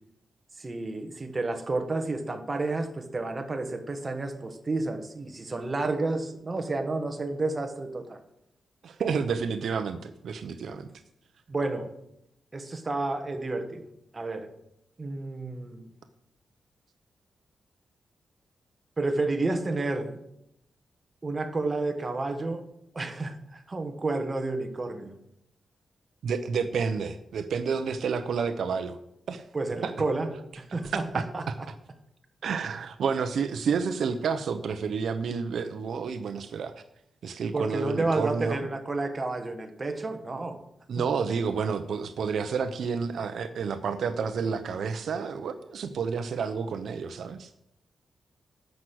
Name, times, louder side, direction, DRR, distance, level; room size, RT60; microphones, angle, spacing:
voice 1, 0.6-8.2 11.5-11.9 12.5-13.8 14.1-14.5 15.0-15.9 19.0-20.2 21.2-22.6 22.9-25.1 29.5-30.3 30.6-31.4 37.5-40.6, right 2 dB, 25° right, 5 dB, 1.5 m, -30 dB
voice 2, 8.8-10.9 26.2-29.0 29.3-29.4 29.8-29.9 30.8-31.5 32.4-36.7 37.2-38.7 40.9-47.5, right 6 dB, 70° right, 10 dB, 0.8 m, -30 dB
12.5 x 6.2 x 7.9 m, 0.79 s
wide cardioid pair, 145°, 0 cm